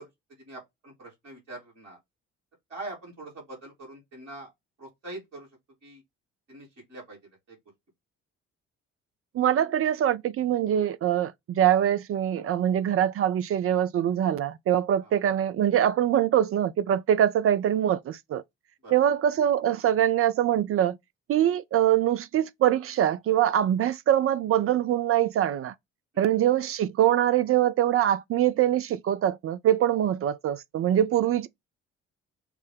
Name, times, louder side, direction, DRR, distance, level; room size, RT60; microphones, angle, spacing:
voice 1, 0.0-2.0 2.7-4.5 4.8-5.5 5.8-6.0 6.5-7.2 7.5-7.6 15.0-15.1 18.8-19.0 26.1-26.3, right 2 dB, 85° right, 3.1 m, -43 dB
voice 2, 9.3-18.4 18.9-21.0 21.3-25.7 26.2-31.5, right 11 dB, 40° right, 0.5 m, -23 dB
5.8 x 2.1 x 3.3 m
figure-of-eight pair, 45°, 36 cm